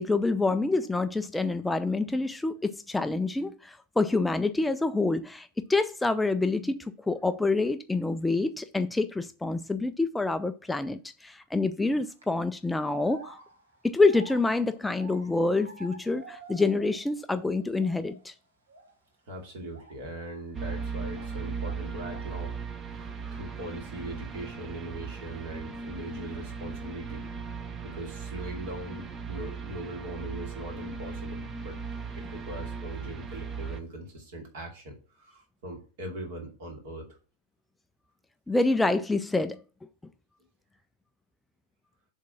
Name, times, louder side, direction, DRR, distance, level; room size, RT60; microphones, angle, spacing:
voice 1, 0.0-13.4 13.8-18.3 38.5-39.6, left 3 dB, 5° left, 0.4 m, -27 dB
sound 1, 11.9-12.2 12.8-17.2 17.5-18.2 18.7-18.9 19.7-21.4 21.6-22.4, right 3 dB, 70° right, 1.6 m, -49 dB
voice 2, 19.3-22.6 23.3-27.6 27.8-31.8 32.2-37.2, right 1 dB, 55° right, 2.5 m, -40 dB
sound 2, 20.5-33.8, right 5 dB, 25° right, 0.7 m, -38 dB
7.3 x 3.6 x 5.8 m
figure-of-eight pair, 90°, 0 cm